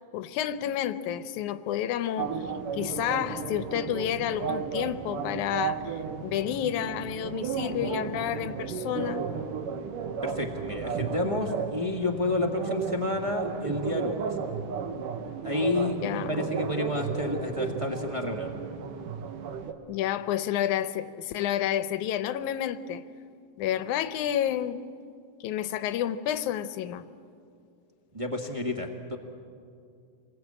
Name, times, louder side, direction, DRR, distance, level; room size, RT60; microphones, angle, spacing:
voice 1, 0.1-2.5 2.7-9.3 16.0-16.5 19.9-23.0 23.6-24.8 25.4-27.0, left 11 dB, 75° left, 13 dB, 2.1 m, -30 dB
sound 1, 2.2-19.7, right 6 dB, 85° right, 2.9 m, -34 dB
voice 2, 10.2-14.3 15.4-18.5 28.1-29.2, left 2 dB, 35° right, 1 dB, 0.5 m, -30 dB
27.5 x 21.0 x 8.7 m, 2.4 s
omnidirectional pair, 3.7 m